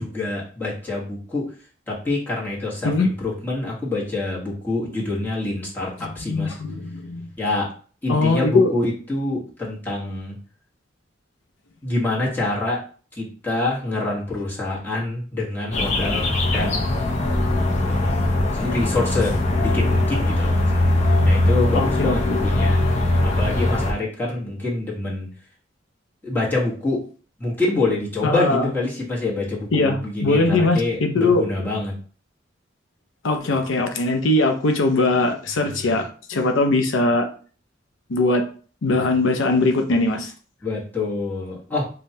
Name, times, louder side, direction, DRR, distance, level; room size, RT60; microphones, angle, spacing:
voice 1, 0.0-1.5 1.9-6.6 7.4-7.7 8.0-10.4 11.8-12.8 13.2-16.9 18.5-20.7 21.2-22.8 23.2-25.3 26.2-27.0 27.4-31.9 40.6-41.8, left 2 dB, 10° left, -6 dB, 1.2 m, -26 dB
voice 2, 6.0-7.3 8.1-8.7 16.5-16.7 21.7-22.5 28.2-28.7 29.7-31.4 33.2-37.3 38.1-38.4 38.8-40.3, left 2 dB, 85° left, 5 dB, 0.5 m, -21 dB
sound 1, 15.7-23.9, left 1 dB, 35° left, 0.6 m, -20 dB
5.1 x 2.2 x 2.7 m, 0.41 s
head